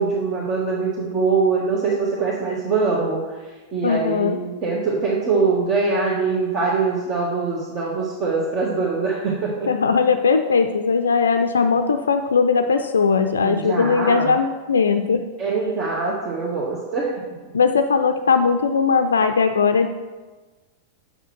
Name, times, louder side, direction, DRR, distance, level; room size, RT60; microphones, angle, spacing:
voice 1, 0.0-9.7 13.4-14.3 15.4-17.1 17.4-17.5, right 4 dB, 35° right, -5 dB, 1.6 m, -23 dB
voice 2, 3.8-4.4 9.7-15.2 17.5-19.9, left 5 dB, 70° left, 7 dB, 0.4 m, -19 dB
7.1 x 5.7 x 6.0 m, 1.2 s
figure-of-eight pair, 90°, 0 cm